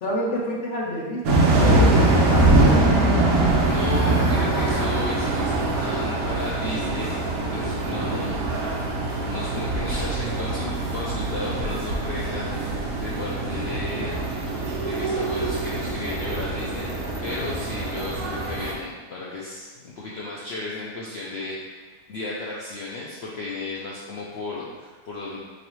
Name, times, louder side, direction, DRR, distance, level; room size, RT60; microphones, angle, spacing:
voice 1, 0.0-3.0, left 1 dB, 60° left, -3 dB, 0.8 m, -29 dB
sound 1, 1.2-18.7, right 2 dB, 70° right, 1.1 m, -23 dB
voice 2, 3.2-7.2 7.5-8.4 9.3-14.2 14.6-16.9 17.2-21.6 22.1-25.4, left 2 dB, 90° left, -5 dB, 0.5 m, -34 dB
4.0 x 3.1 x 3.0 m, 1.4 s
omnidirectional pair, 1.7 m